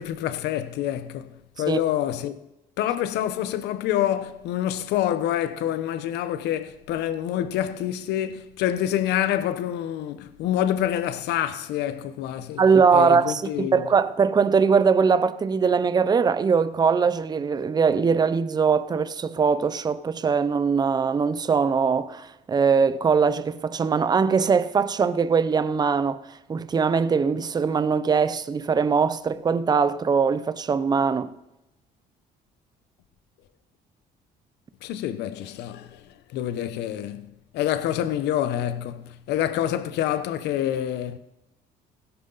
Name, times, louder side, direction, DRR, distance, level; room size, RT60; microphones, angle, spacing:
voice 1, 0.0-2.3 2.8-12.6 12.9-13.9 34.8-36.0 36.3-37.3 37.5-41.2, left 11 dB, 85° left, 0.9 m, -27 dB
voice 2, 12.6-26.2 26.5-31.3, right 5 dB, 25° right, 0.6 m, -21 dB
16.0 x 11.5 x 4.0 m
cardioid pair, 110°, 17 cm